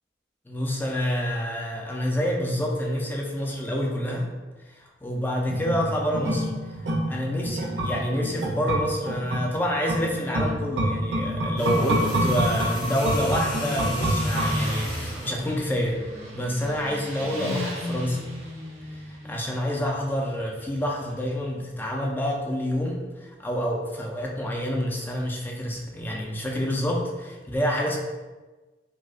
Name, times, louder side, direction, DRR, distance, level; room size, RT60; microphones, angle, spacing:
voice 1, 0.5-4.3 4.8-6.5 7.1-16.0 16.3-18.2 19.1-28.0, equal, 10° left, -1 dB, 0.4 m, -28 dB
sound 1, 5.5-15.0 15.3-15.4, right 1 dB, 75° right, 0.6 m, -27 dB
sound 2, 11.6-15.4 16.6-16.8, left 1 dB, 70° left, 0.8 m, -37 dB
Motorcycle, 12.6-21.4, left 1 dB, 40° right, 0.7 m, -36 dB
4.6 x 2.1 x 2.4 m, 1.2 s
head